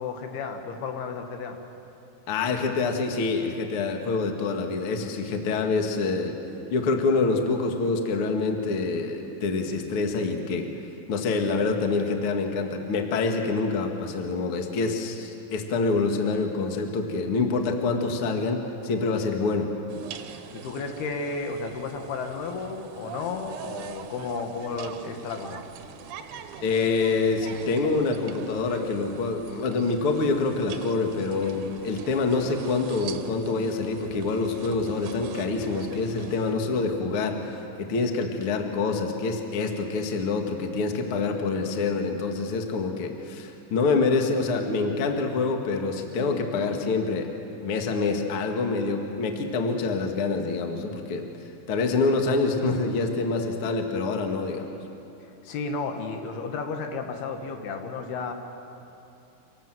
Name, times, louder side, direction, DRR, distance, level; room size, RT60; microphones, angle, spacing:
voice 1, 0.0-1.6 20.5-25.6 55.2-58.3, left 4 dB, 80° left, 5 dB, 3.4 m, -33 dB
voice 2, 2.3-6.4 6.7-10.7 11.1-19.7 26.6-37.4 37.8-47.3 47.6-51.3 51.7-54.7, left 3 dB, 50° left, 4 dB, 1.8 m, -26 dB
sound 1, 19.9-36.6, right 8 dB, 70° right, 2.2 m, -43 dB
26.0 x 18.0 x 7.8 m, 2.8 s
omnidirectional pair, 4.5 m